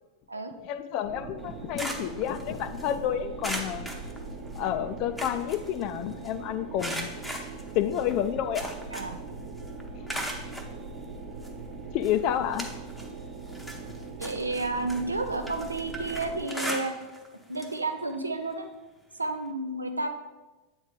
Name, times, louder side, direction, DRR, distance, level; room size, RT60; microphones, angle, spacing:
voice 1, 0.6-3.9 4.6-7.1 7.7-8.7 11.9-12.7, left 10 dB, 40° left, 11 dB, 0.4 m, -29 dB
sound 1, 1.0-16.5, right 3 dB, 55° right, 1.1 m, -41 dB
sound 2, 1.4-2.9 3.4-4.7 5.0-6.3 6.8-9.3 9.6-10.7 11.4-11.5 12.0-13.1 13.5-17.3 17.5-17.8 18.1-18.2 19.4-19.5, equal, ahead, 0.8 m, -38 dB
voice 2, 14.2-16.9 17.5-18.7 19.1-20.1, right 2 dB, 80° right, 6 dB, 0.6 m, -31 dB
8.0 x 3.1 x 5.1 m, 1.1 s
figure-of-eight pair, 90°, 0 cm